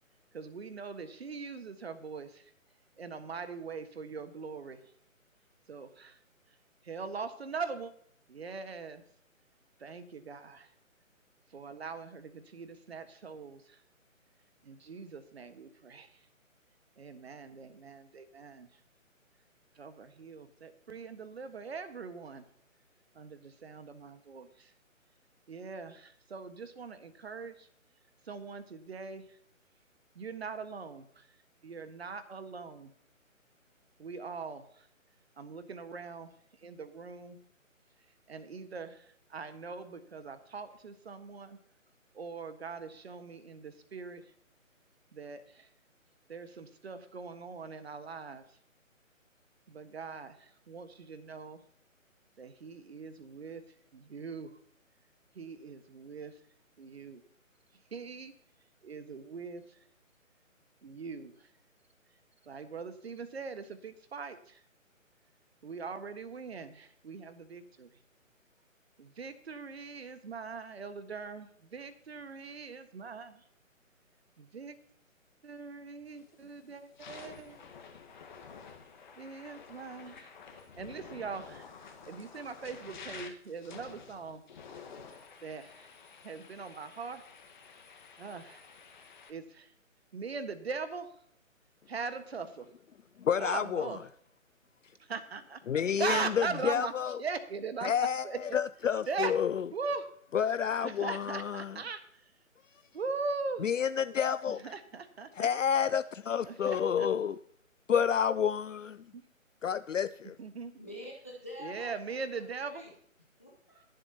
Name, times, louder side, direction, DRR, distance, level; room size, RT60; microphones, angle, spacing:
voice 1, 0.3-2.4 3.0-4.8 5.7-6.2 6.8-7.9 8.3-9.0 9.8-10.7 11.5-13.8 14.6-16.1 17.0-18.7 19.8-22.4 23.1-24.7 25.5-27.7 28.3-29.2 30.1-31.2 31.6-32.9 34.0-34.8 35.4-36.3 36.6-37.4 38.3-41.6 42.1-44.2 45.1-45.7 46.3-48.4 49.7-51.6 52.4-53.6 53.9-54.5 55.3-56.3 56.8-57.2 57.9-58.3 58.8-59.6 60.8-61.3 62.5-64.6 65.6-67.9 69.0-73.4 74.4-74.7 75.4-77.6 79.2-80.3 80.8-81.7 82.1-84.4 85.4-85.9 86.2-87.2 88.2-88.6 89.3-89.7 90.1-91.1 91.9-92.7 93.4-94.0 95.1-95.6 96.0-96.9 97.2-98.4 99.1-99.3 99.7-100.1 100.8-102.0 102.9-103.7 104.5-105.3 106.5-107.1 109.1-109.2 110.4-110.7 111.6-112.8, right 5 dB, 50° right, 1.5 m, -41 dB
sound 1, 76.1-76.4 76.8-89.3, left 6 dB, 35° left, 1.5 m, -50 dB
voice 2, 93.2-94.0 95.7-97.2 97.8-99.7 100.3-101.8 103.6-104.7 105.3-107.4 107.9-109.1 109.6-110.4, left 8 dB, 65° left, 0.5 m, -30 dB
voice 3, 110.7-111.9 112.3-112.9 113.4-113.8, left 1 dB, 10° left, 0.5 m, -46 dB
21.5 x 7.8 x 2.9 m
figure-of-eight pair, 150°, 41 cm